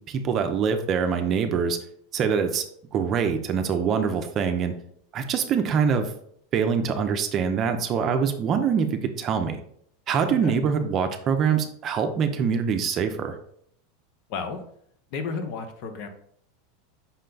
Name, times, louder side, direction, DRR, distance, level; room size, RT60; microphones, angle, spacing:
voice 1, 0.1-1.8 2.1-2.6 2.9-4.7 5.1-6.1 6.5-9.6 10.1-13.4, right 6 dB, 35° right, 7 dB, 0.5 m, -24 dB
voice 2, 14.3-14.6 15.1-16.1, left 5 dB, 55° left, 6 dB, 0.7 m, -32 dB
5.5 x 2.2 x 3.8 m, 0.66 s
supercardioid pair, 125°, 0 cm